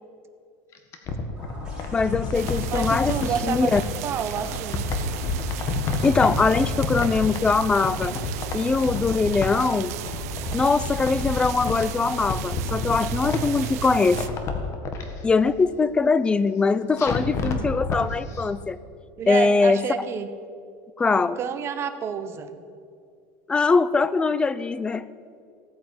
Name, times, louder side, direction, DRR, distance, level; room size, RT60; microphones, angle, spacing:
sound 1, 0.7-3.9 4.4-7.6 7.8-9.7 10.0-11.9 12.2-13.7 14.1-15.0 17.0-18.0 18.3-18.4, left 4 dB, 35° left, 1.7 m, -29 dB
sound 2, 1.4-6.7 8.0-8.1, right 2 dB, 10° right, 5.0 m, -50 dB
voice 1, 1.9-3.8 6.0-8.1 8.5-9.9 10.5-14.2 15.2-18.8 19.3-19.8 21.0-21.4 23.5-25.1, left 4 dB, 10° left, 16 dB, 0.4 m, -22 dB
sound 3, 2.3-14.3, right 11 dB, 85° right, 0.8 m, -35 dB
voice 2, 2.7-4.9 19.2-20.3 21.1-22.6, right 7 dB, 30° right, 10 dB, 1.0 m, -29 dB
16.0 x 9.2 x 8.0 m, 2.3 s
supercardioid pair, 150°, 8 cm